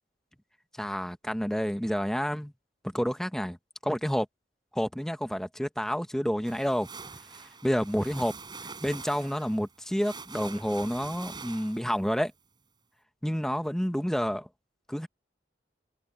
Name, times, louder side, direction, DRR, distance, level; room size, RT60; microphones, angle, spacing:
voice 1, 0.8-2.5 2.9-3.6 3.8-4.3 4.7-6.9 7.6-8.3 8.8-12.3 13.2-14.5 14.9-15.1, equal, 5° left, 1.0 m, -29 dB
sound 1, 6.5-12.1, right 4 dB, 25° right, 7.3 m, -45 dB
head